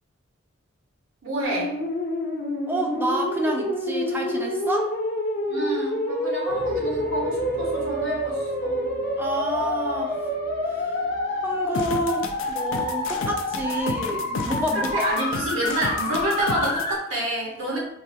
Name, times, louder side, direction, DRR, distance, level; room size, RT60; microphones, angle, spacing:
voice 1, 1.2-1.7 5.5-8.9 14.7-17.8, right 1 dB, 80° right, -3 dB, 1.3 m, -28 dB
sound 1, 1.4-16.9, left 1 dB, 50° left, 0.7 m, -28 dB
voice 2, 2.7-4.9 9.2-10.3 10.7-10.9 11.4-15.1, right 1 dB, 10° right, 1 dB, 0.4 m, -29 dB
sound 2, 6.5-11.7, right 4 dB, 65° right, 0.9 m, -38 dB
sound 3, 11.7-16.9, left 4 dB, 75° left, 0.4 m, -32 dB
3.9 x 2.3 x 2.7 m, 0.77 s
head